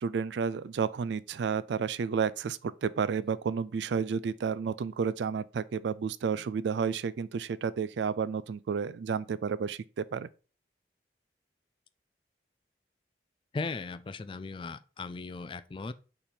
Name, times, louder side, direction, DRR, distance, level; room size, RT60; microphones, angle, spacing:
voice 1, 0.0-10.3, right 6 dB, 80° right, 0.4 m, -31 dB
voice 2, 13.5-15.9, left 3 dB, 30° left, 0.3 m, -37 dB
4.3 x 4.3 x 5.0 m
head